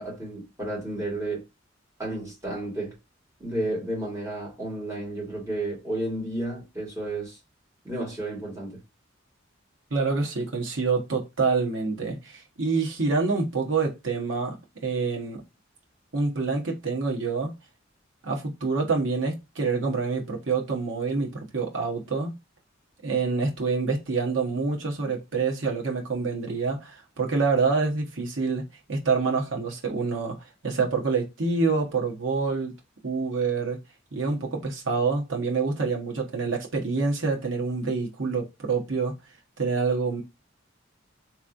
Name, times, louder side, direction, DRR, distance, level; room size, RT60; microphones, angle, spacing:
voice 1, 0.0-1.4 2.0-3.0 3.4-7.4 7.8-8.8, right 1 dB, 15° right, 2.2 m, -32 dB
voice 2, 9.9-14.6 14.8-15.4 16.1-17.5 18.2-22.3 23.0-28.6 28.9-30.4 30.6-32.7 33.0-33.8 34.1-39.1 39.6-40.2, right 4 dB, 75° right, 1.1 m, -26 dB
3.5 x 3.1 x 2.6 m
head